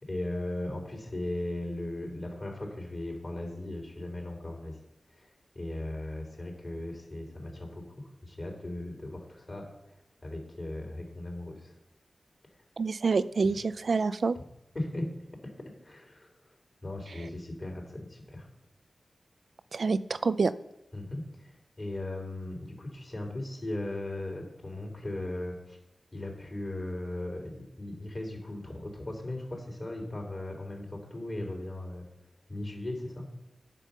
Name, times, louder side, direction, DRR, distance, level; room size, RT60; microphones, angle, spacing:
voice 1, 0.0-4.8 5.2-5.3 5.6-9.7 10.2-11.8 14.7-15.1 15.4-16.3 16.8-18.5 20.9-25.8 26.1-32.1 32.5-33.3, left 1 dB, 45° left, 0 dB, 3.8 m, -37 dB
voice 2, 12.8-14.4 19.7-20.5, right 4 dB, 75° right, 13 dB, 0.4 m, -27 dB
9.1 x 6.9 x 5.9 m, 0.88 s
cardioid pair, 45°, 0 cm